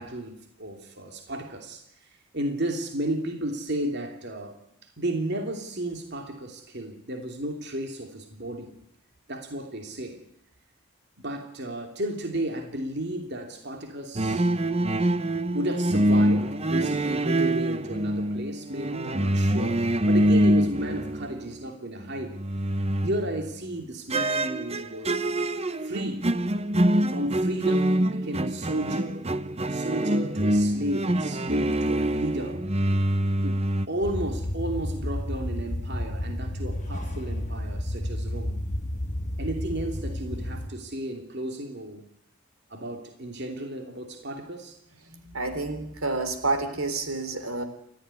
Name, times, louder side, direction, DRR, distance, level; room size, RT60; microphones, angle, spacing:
voice 1, 0.0-1.8 2.3-4.6 5.0-8.7 9.3-10.2 11.2-14.9 15.2-22.4 23.0-25.2 25.8-26.3 27.1-29.3 29.7-32.6 33.4-33.6 33.9-38.6 39.4-42.0 42.7-44.8, right 1 dB, 50° right, 4 dB, 2.9 m, -33 dB
sound 1, 14.2-21.7 22.0-23.5 24.1-33.9, right 1 dB, 30° right, 0.9 m, -25 dB
sound 2, 34.0-40.7, left 1 dB, 35° left, 2.0 m, -31 dB
voice 2, 45.1-47.6, right 3 dB, 85° right, 9 dB, 3.5 m, -29 dB
29.0 x 13.5 x 9.8 m, 0.75 s
head